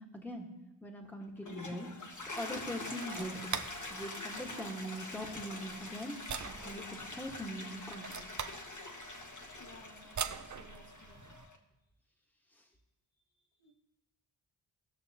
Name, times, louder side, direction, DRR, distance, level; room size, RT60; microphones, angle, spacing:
voice 1, 0.1-0.5 0.8-1.9 2.4-3.6 3.9-6.2 6.4-8.3 11.1-11.4 12.6-12.7, equal, 5° left, 0 dB, 1.6 m, -42 dB
Toilet flush, 1.2-11.6, left 2 dB, 35° left, 1.4 m, -45 dB
sound 1, 2.1-11.5, right 6 dB, 35° right, 0.6 m, -45 dB
voice 2, 9.6-11.3 13.6-13.7, left 3 dB, 60° left, -3 dB, 2.8 m, -58 dB
18.5 x 6.2 x 2.9 m, 0.98 s
cardioid pair, 50°, 50 cm